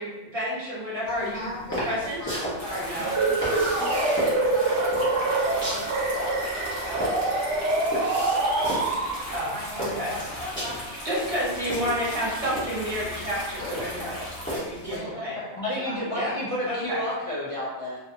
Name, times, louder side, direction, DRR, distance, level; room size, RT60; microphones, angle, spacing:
voice 1, 0.0-1.5 1.8-2.2 2.7-3.1 9.3-10.1 11.0-15.3 16.1-16.3 16.7-17.0, equal, 35° right, -8 dB, 0.9 m, -30 dB
voice 2, 1.1-7.4 9.5-10.7 13.5-14.3 14.8-15.9, left 1 dB, 85° left, -6 dB, 1.3 m, -38 dB
sound 1, 1.1-15.0, equal, 10° left, 0.6 m, -36 dB
sound 2, 2.6-14.6, equal, 40° left, 0.9 m, -38 dB
sound 3, 3.0-9.5, right 2 dB, 80° right, 0.9 m, -25 dB
voice 3, 15.6-18.0, left 1 dB, 55° left, -7 dB, 0.3 m, -30 dB
2.5 x 2.4 x 2.6 m, 1.1 s
omnidirectional pair, 1.2 m